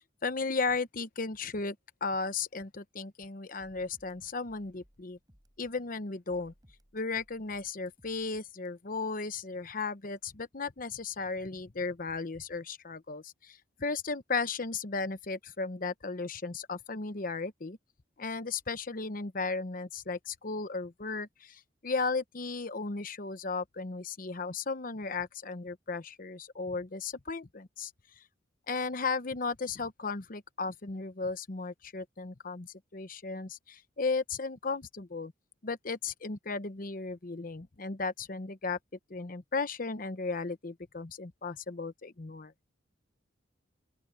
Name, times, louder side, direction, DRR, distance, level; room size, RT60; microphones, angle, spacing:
voice 1, 0.2-1.8 2.0-5.2 5.6-6.5 6.9-17.8 18.2-27.9 28.7-35.3 35.6-38.8 39.1-42.5, left 4 dB, 45° left, 0.9 m, -35 dB
sound 1, 3.6-6.0 6.3-8.7, equal, 20° right, 6.2 m, -64 dB
open air
head